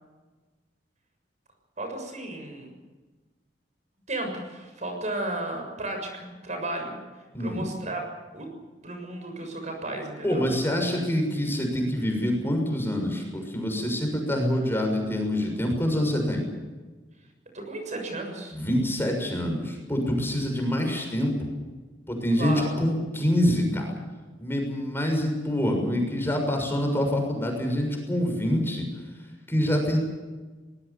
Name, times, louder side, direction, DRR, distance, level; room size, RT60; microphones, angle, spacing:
voice 1, 1.8-2.7 4.1-7.0 7.4-8.0 8.3-8.5 8.8-10.5 17.5-18.6 22.4-22.8, right 2 dB, 45° right, 4 dB, 6.9 m, -34 dB
voice 2, 7.3-7.7 10.2-16.4 18.5-21.5 22.1-23.9 24.4-28.8 29.5-30.0, equal, 15° left, 2 dB, 6.5 m, -26 dB
24.5 x 20.5 x 7.2 m, 1.3 s
head